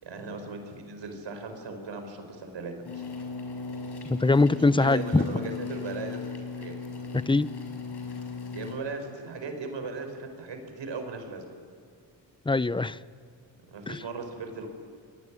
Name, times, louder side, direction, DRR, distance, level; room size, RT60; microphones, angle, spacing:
voice 1, 0.0-3.0 4.5-6.2 6.6-6.8 8.5-11.4 13.7-14.7, right 3 dB, 70° right, 6 dB, 5.5 m, -37 dB
sound 1, 2.8-8.7, left 4 dB, 60° left, 5.8 m, -37 dB
voice 2, 4.1-5.2 7.1-7.5 12.5-13.0 13.9-14.0, left 3 dB, 10° left, 17 dB, 0.6 m, -22 dB
28.5 x 21.0 x 9.8 m, 2.1 s
cardioid pair, 70°, 45 cm